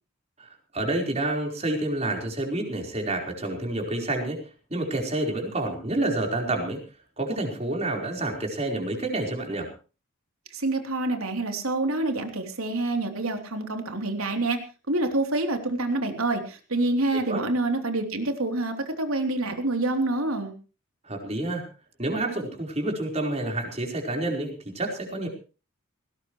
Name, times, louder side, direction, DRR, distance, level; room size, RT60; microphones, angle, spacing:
voice 1, 0.4-4.4 4.7-6.8 7.2-9.7 17.3-17.4 21.0-21.6 22.0-25.3, right 2 dB, 30° right, 2 dB, 4.7 m, -28 dB
voice 2, 10.5-14.6 14.9-20.5, right 2 dB, 85° right, 5 dB, 3.6 m, -27 dB
19.5 x 17.5 x 3.3 m, 0.35 s
head